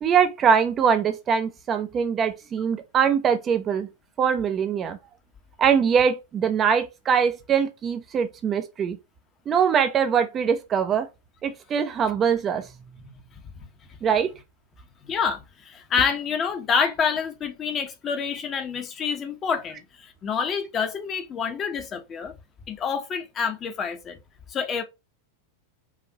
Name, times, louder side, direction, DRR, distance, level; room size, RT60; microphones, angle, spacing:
voice 1, 0.0-3.9 4.2-5.0 5.6-9.0 9.5-11.1 11.4-12.6 14.0-14.3, right 7 dB, 25° right, 0.5 m, -22 dB
voice 2, 15.1-22.3 22.7-24.2 24.5-24.8, left 6 dB, 25° left, 0.8 m, -27 dB
4.9 x 2.5 x 2.8 m
figure-of-eight pair, 90°, 0 cm